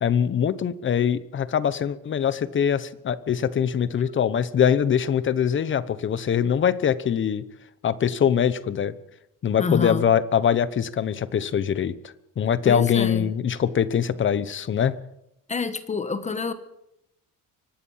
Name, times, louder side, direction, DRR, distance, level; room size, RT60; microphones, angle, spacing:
voice 1, 0.0-7.4 7.8-8.9 9.4-15.0, left 8 dB, 35° left, 15 dB, 1.0 m, -23 dB
voice 2, 9.6-10.0 12.6-13.3 15.5-16.5, left 4 dB, 20° left, 10 dB, 1.4 m, -27 dB
24.5 x 18.5 x 5.7 m, 0.83 s
cardioid pair, 170°, 33 cm